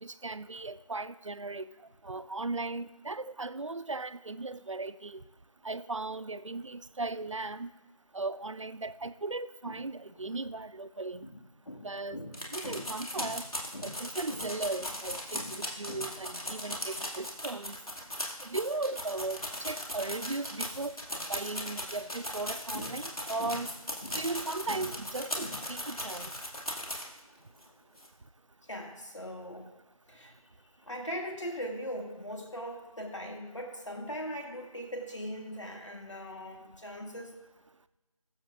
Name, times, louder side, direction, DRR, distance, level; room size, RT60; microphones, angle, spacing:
voice 1, 0.0-1.6 2.0-5.2 5.6-7.7 8.1-11.3 11.8-12.2 12.5-13.4 13.8-17.8 18.4-23.7 24.1-26.3, right 3 dB, 55° right, 14 dB, 0.4 m, -37 dB
voice 2, 11.7-12.9 13.2-13.3 13.7-14.0 14.3-14.5 15.3-15.5 15.9-16.0 22.7-23.0 23.4-23.6 24.0-24.2 24.7-24.9 25.4-25.6 28.7-29.7 30.1-30.4 30.8-37.4, equal, 55° left, 1 dB, 2.2 m, -40 dB
sound 1, 12.3-27.2 27.6-27.7 28.0-28.1, left 1 dB, 70° left, 2.4 m, -37 dB
21.5 x 7.2 x 2.6 m, 1.1 s
figure-of-eight pair, 175°, 19 cm